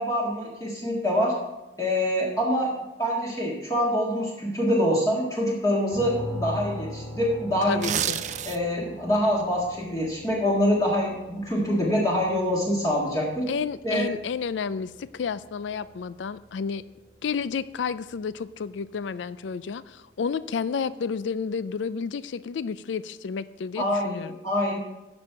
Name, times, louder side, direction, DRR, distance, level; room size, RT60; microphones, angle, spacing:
voice 1, 0.0-1.3 1.8-2.7 3.0-8.0 8.5-13.4 13.8-14.1 23.8-24.8, equal, 20° left, -4 dB, 1.7 m, -25 dB
sound 1, 5.9-19.6, equal, 35° left, 4.1 m, -42 dB
voice 2, 7.7-8.2 13.5-16.8 17.2-24.4, left 6 dB, 80° left, 16 dB, 0.4 m, -31 dB
sound 2, 7.7-8.8 9.2-9.4, right 9 dB, 40° right, 0.4 m, -29 dB
9.8 x 6.2 x 5.6 m, 0.96 s
head